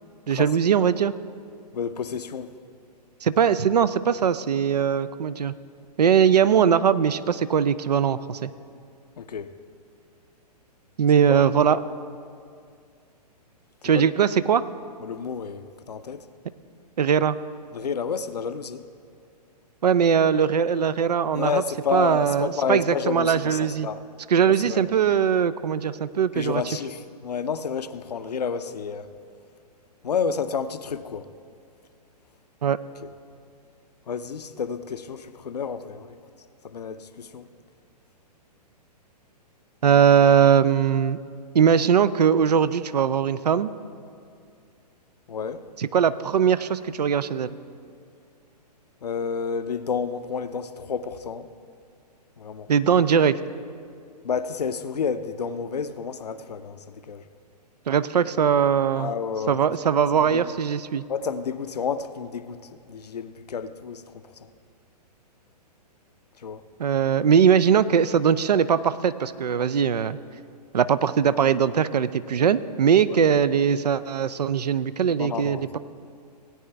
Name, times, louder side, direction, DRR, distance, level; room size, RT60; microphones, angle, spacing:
voice 1, 0.3-1.1 3.2-5.5 6.0-8.5 11.0-11.8 13.8-14.6 17.0-17.4 19.8-21.6 21.9-23.9 24.3-26.6 32.6-32.8 39.8-41.2 41.5-43.7 45.8-47.5 52.7-53.4 57.9-59.1 59.5-61.0 66.8-70.2 70.7-75.8, right 7 dB, 70° right, 16 dB, 0.5 m, -20 dB
voice 2, 1.7-2.5 9.2-9.5 11.3-11.4 13.9-14.1 15.0-16.3 17.7-18.8 21.3-24.0 24.4-24.8 26.3-29.1 30.0-31.3 33.0-33.1 34.1-36.1 36.6-37.5 45.3-45.6 49.0-51.5 52.4-52.7 54.2-57.2 59.0-59.6 60.1-60.4 61.1-62.6 62.9-64.0 64.4-64.5 66.4-66.6 75.2-75.7, left 6 dB, 70° left, 11 dB, 0.6 m, -30 dB
18.0 x 9.2 x 3.3 m, 2.3 s
figure-of-eight pair, 120°, 21 cm